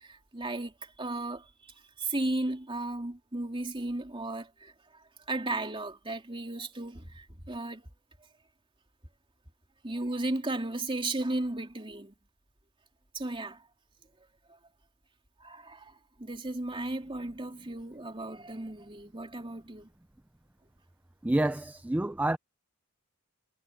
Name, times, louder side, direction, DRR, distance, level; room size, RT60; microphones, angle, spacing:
voice 1, 0.3-0.7 1.0-1.4 2.1-4.7 5.3-7.1 7.5-7.8 9.8-12.1 13.1-13.6 15.4-15.8 16.2-19.9, right 2 dB, 25° right, 3.1 m, -34 dB
voice 2, 21.2-22.4, right 1 dB, 5° right, 0.3 m, -28 dB
head